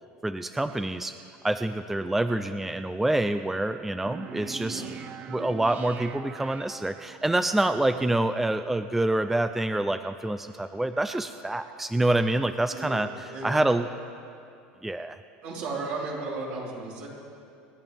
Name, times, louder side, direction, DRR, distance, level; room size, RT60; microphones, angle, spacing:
voice 1, 0.2-1.2 1.4-4.8 5.3-13.1 13.4-13.9 14.8-15.2, right 1 dB, 5° right, 10 dB, 0.4 m, -26 dB
sound 1, 4.1-7.3, right 8 dB, 40° right, 0.8 m, -42 dB
voice 2, 12.6-13.6 15.4-17.1, right 3 dB, 65° right, -5 dB, 4.5 m, -35 dB
28.5 x 11.0 x 3.6 m, 2.5 s
supercardioid pair, 125°, 4 cm